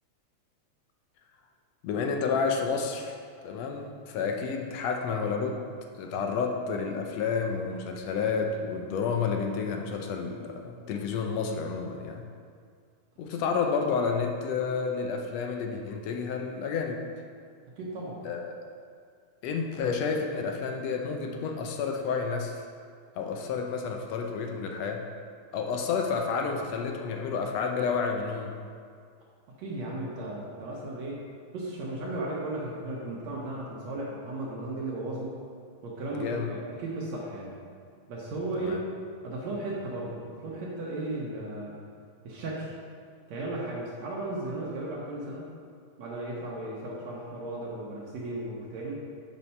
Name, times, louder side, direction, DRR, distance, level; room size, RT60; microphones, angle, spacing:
voice 1, 1.8-3.2 3.4-5.6 6.0-12.3 13.2-17.1 18.2-18.5 19.4-22.6 23.2-25.0 25.5-28.6 36.1-36.5 38.5-38.8, left 5 dB, 75° left, 3 dB, 1.7 m, -30 dB
voice 2, 17.8-18.2 29.5-31.2 31.5-35.4 35.8-37.5 38.1-38.9 39.2-41.8 42.2-42.7 43.3-45.5 46.0-49.1, right 2 dB, 70° right, -5 dB, 2.1 m, -35 dB
7.2 x 5.7 x 5.3 m, 2.2 s
omnidirectional pair, 3.3 m